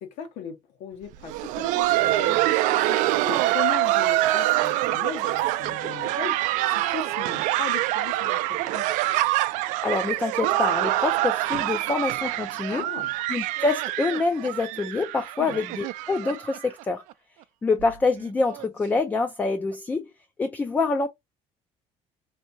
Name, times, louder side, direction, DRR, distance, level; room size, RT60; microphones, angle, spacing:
voice 1, 0.0-8.9 12.7-13.1 15.4-15.7, left 8 dB, 70° left, 1.1 m, -38 dB
Laughter, 1.1-16.8 17.1-17.2 17.8-17.9 18.4-18.7 19.7-19.8, right 16 dB, 85° right, 0.4 m, -25 dB
voice 2, 9.8-12.8 13.3-17.0 17.6-20.1 20.4-21.1, left 3 dB, 10° left, 0.3 m, -26 dB
3.5 x 2.7 x 2.6 m
cardioid pair, 170°, 13 cm